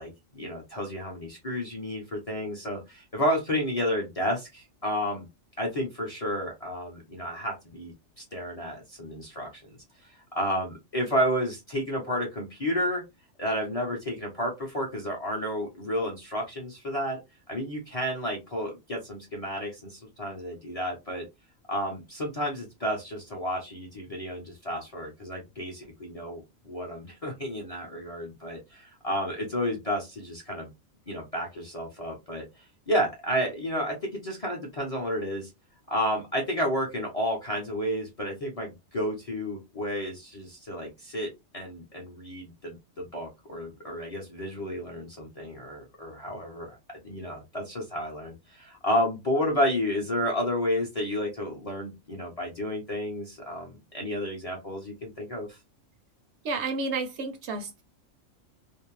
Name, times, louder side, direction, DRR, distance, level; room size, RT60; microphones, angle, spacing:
voice 1, 0.0-5.3 5.6-9.6 10.0-13.0 13.4-17.2 17.5-21.3 21.7-30.7 31.1-35.5 35.9-46.8 47.0-55.6, equal, 40° left, 0.5 m, -31 dB
voice 2, 56.4-57.8, right 3 dB, 70° right, 0.8 m, -31 dB
2.5 x 2.0 x 2.9 m
omnidirectional pair, 1.3 m